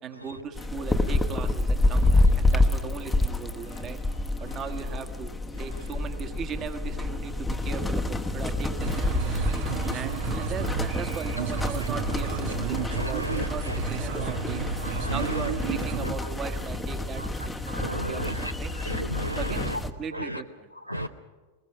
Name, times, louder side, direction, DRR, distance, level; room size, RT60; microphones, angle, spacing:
voice 1, 0.0-4.0 4.4-5.3 5.6-9.4 9.9-14.6 15.1-18.7 19.4-21.1, right 6 dB, 30° right, 7 dB, 1.7 m, -38 dB
sound 1, 0.6-19.9, left 2 dB, 5° left, 1.0 m, -28 dB
sound 2, 8.8-16.0, right 6 dB, 55° right, 1.1 m, -32 dB
voice 2, 12.9-13.8 14.2-14.3 14.8-15.2 16.0-16.1 17.7-18.5 18.9-19.8 20.1-20.4 20.9-21.1, equal, 90° right, 11 dB, 0.6 m, -33 dB
21.0 x 21.0 x 6.2 m, 1.3 s
figure-of-eight pair, 90°, 0 cm